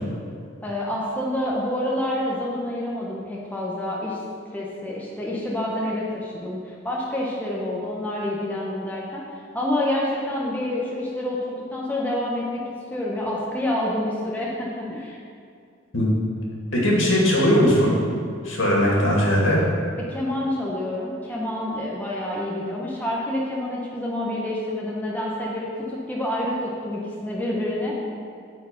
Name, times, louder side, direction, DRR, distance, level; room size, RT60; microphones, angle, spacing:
voice 1, 0.6-4.2 4.5-9.2 9.5-12.6 12.9-15.2 20.0-28.0, left 1 dB, 10° left, -5 dB, 1.1 m, -28 dB
voice 2, 16.7-18.0 18.4-19.6, equal, 65° left, -4 dB, 2.2 m, -19 dB
12.5 x 4.6 x 5.3 m, 2.4 s
head